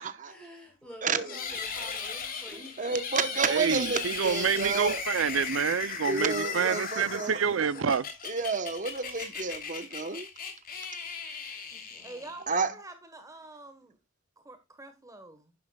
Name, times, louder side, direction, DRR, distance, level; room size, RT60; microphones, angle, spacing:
voice 1, 0.2-3.0 6.2-6.5 11.7-12.7, left 1 dB, 5° left, 6.3 m, -49 dB
voice 2, 1.0-1.3 2.8-5.0 6.1-7.4 8.3-10.3 12.5-12.7, right 5 dB, 40° right, 1.0 m, -30 dB
sound 1, 1.2-12.6, left 6 dB, 45° left, 3.1 m, -37 dB
voice 3, 3.4-8.1, right 6 dB, 70° right, 0.5 m, -28 dB
voice 4, 7.5-7.9 12.0-14.0 14.4-15.5, right 2 dB, 15° right, 1.2 m, -47 dB
11.5 x 11.0 x 2.3 m
head